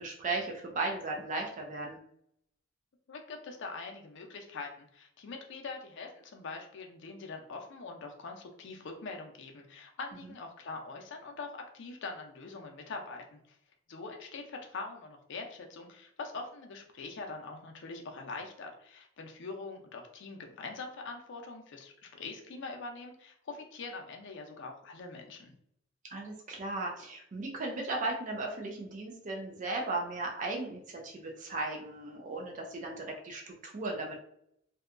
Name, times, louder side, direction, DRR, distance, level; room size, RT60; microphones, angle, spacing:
voice 1, 0.0-2.0 26.1-34.2, right 2 dB, 40° right, 0 dB, 0.4 m, -36 dB
voice 2, 3.1-13.6 13.9-25.5, left 3 dB, 65° left, 3 dB, 0.5 m, -43 dB
2.7 x 2.2 x 2.4 m, 0.72 s
head